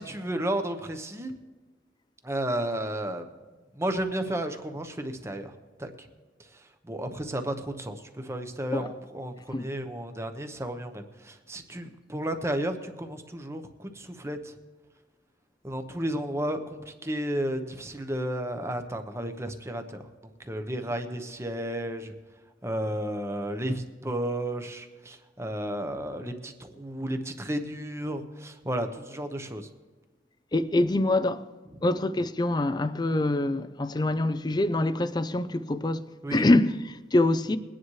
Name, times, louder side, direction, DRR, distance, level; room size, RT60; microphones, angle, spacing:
voice 1, 0.0-1.3 2.2-3.3 3.7-5.5 5.8-6.1 6.5-14.5 15.6-20.1 20.4-22.1 22.6-29.7 36.2-36.5, right 1 dB, 15° right, 0.9 m, -33 dB
voice 2, 30.5-31.5 31.8-37.6, left 2 dB, 25° left, 0.5 m, -25 dB
22.0 x 10.0 x 3.2 m
head